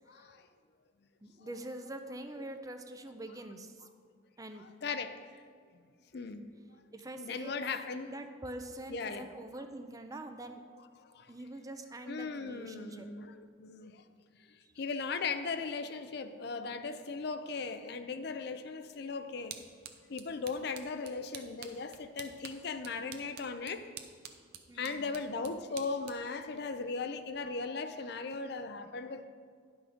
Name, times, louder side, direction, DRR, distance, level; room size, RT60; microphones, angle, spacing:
voice 1, 0.1-0.5 1.4-1.5 4.8-5.2 6.1-6.5 7.2-8.1 8.9-9.3 11.1-11.3 12.1-14.0 14.8-19.6 20.1-23.8 24.7-29.3, left 4 dB, 55° left, 9 dB, 0.5 m, -38 dB
voice 2, 1.2-3.9 4.4-4.7 6.9-7.7 8.1-10.6 11.3-13.1 14.6-14.7 24.7-25.2, right 1 dB, 20° right, 7 dB, 0.5 m, -45 dB
sound 1, 18.8-27.5, right 8 dB, 55° right, 0.7 m, -51 dB
11.0 x 6.1 x 5.1 m, 2.1 s
head